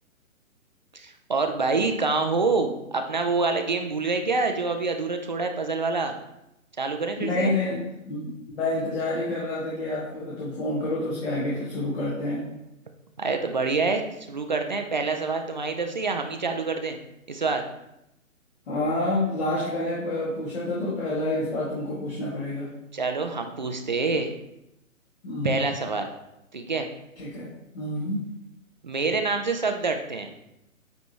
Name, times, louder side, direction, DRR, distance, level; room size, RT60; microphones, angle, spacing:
voice 1, 0.9-6.2 6.8-7.5 13.2-14.0 14.3-17.0 17.3-17.6 22.9-24.3 25.4-26.1 26.5-26.9 28.8-30.3, right 3 dB, 35° right, 5 dB, 0.4 m, -26 dB
voice 2, 7.2-12.4 18.7-22.7 25.2-25.6 27.2-27.5 27.7-28.2, left 2 dB, 50° left, -7 dB, 1.9 m, -28 dB
9.4 x 3.4 x 2.9 m, 0.86 s
figure-of-eight pair, 130°, 42 cm